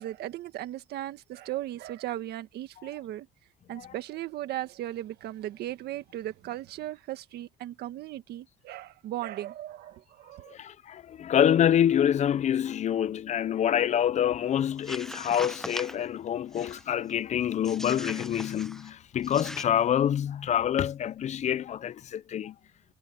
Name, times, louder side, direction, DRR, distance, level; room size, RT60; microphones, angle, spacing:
voice 1, 0.0-3.3 3.7-10.5, right 14 dB, 75° right, 1.7 m, -37 dB
voice 2, 10.5-22.6, left 10 dB, 45° left, 0.5 m, -26 dB
sound 1, 14.7-16.0 16.5-16.9 17.6-18.9 19.2-19.6, left 1 dB, 5° left, 1.0 m, -40 dB
cardioid pair, 110°, 17 cm